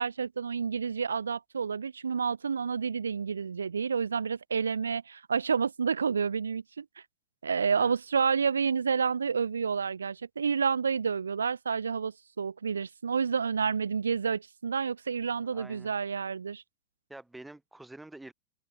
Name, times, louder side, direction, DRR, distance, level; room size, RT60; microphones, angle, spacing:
voice 1, 0.0-6.9 7.4-16.6, right 6 dB, 80° right, 0.3 m, -29 dB
voice 2, 15.5-15.9 17.1-18.3, right 2 dB, 5° right, 1.2 m, -47 dB
open air
figure-of-eight pair, 90°, 0 cm